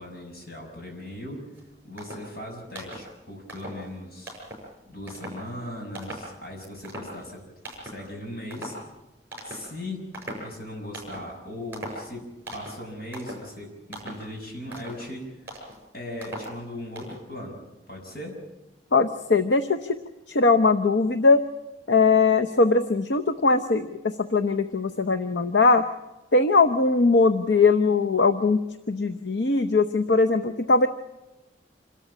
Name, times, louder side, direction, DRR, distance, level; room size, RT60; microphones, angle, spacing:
voice 1, 0.0-1.5 1.8-4.4 4.8-7.4 7.8-8.7 9.4-15.4 15.9-17.6 17.9-18.4, left 1 dB, 55° left, 1 dB, 6.4 m, -38 dB
sound 1, 1.5-1.6 2.0-2.4 2.7-3.1 3.5-3.9 4.3-4.7 5.1-5.5 5.9-6.4 6.6-7.4 7.6-8.1 8.5-8.9 9.3-9.8 10.1-10.5 10.9-11.3 11.7-12.1 12.5-12.8 13.1-13.5 13.9-14.3 14.7-15.1 15.5-15.8 16.2-16.6 17.0-17.2, right 1 dB, 10° right, 7.0 m, -39 dB
voice 2, 18.9-20.0 20.3-21.4 21.9-25.8 26.3-28.6 28.9-30.9, left 3 dB, 75° left, 7 dB, 0.8 m, -20 dB
27.0 x 13.0 x 8.5 m, 0.98 s
head